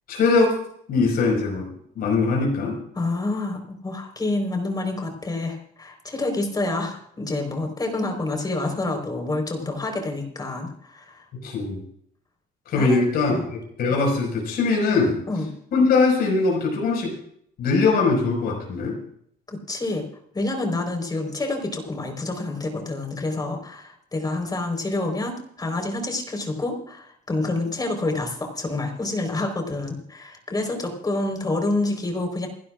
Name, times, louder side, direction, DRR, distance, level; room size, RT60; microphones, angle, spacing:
voice 1, 0.1-0.5 0.9-1.7 2.0-2.8 11.4-11.8 12.7-13.3 13.8-15.2 15.7-17.1 17.6-19.0, left 4 dB, 65° left, 0 dB, 5.6 m, -21 dB
voice 2, 2.9-11.2 12.8-13.0 13.3-13.5 15.3-15.5 19.5-20.0 20.3-32.5, left 2 dB, 25° left, 4 dB, 4.4 m, -28 dB
28.5 x 12.5 x 2.5 m, 0.66 s
cardioid pair, 110°, 17 cm